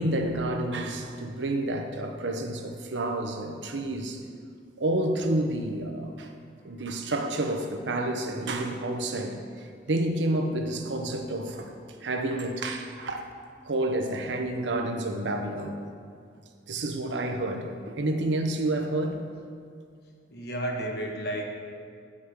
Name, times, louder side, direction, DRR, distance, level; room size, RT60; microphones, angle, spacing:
voice 1, 0.0-4.2 4.8-6.3 6.6-11.7 12.0-13.2 13.6-15.8 16.7-19.2, right 1 dB, 90° right, 4 dB, 0.8 m, -29 dB
voice 2, 20.3-21.5, right 1 dB, 60° left, 1 dB, 1.2 m, -32 dB
8.1 x 5.4 x 6.3 m, 2.2 s
head